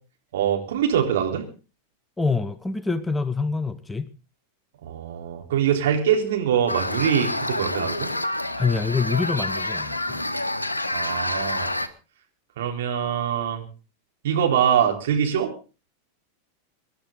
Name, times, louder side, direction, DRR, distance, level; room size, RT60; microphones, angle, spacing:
voice 1, 0.3-1.4 4.8-8.1 10.9-11.7 12.6-13.6 14.2-15.5, right 8 dB, 55° right, 3.8 m, -23 dB
voice 2, 2.2-4.1 8.5-10.2, left 4 dB, 10° left, 0.8 m, -26 dB
sound 1, 6.7-11.9, left 1 dB, 80° left, 1.2 m, -28 dB
25.0 x 11.5 x 3.9 m
figure-of-eight pair, 90°, 0 cm